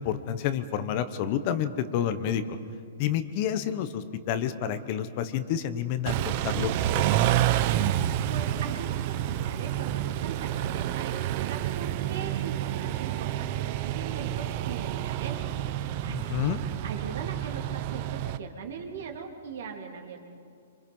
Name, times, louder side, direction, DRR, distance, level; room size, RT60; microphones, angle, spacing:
voice 1, 0.0-2.6 3.0-7.2 16.0-16.6, left 9 dB, 40° left, 11 dB, 1.1 m, -29 dB
Car / Idling / Accelerating revving vroom, 6.0-18.4, right 12 dB, 40° right, 0.7 m, -29 dB
voice 2, 8.0-20.2, right 6 dB, 65° right, 3 dB, 3.0 m, -40 dB
26.0 x 25.0 x 5.5 m, 2.4 s
hypercardioid pair, 150°, 0 cm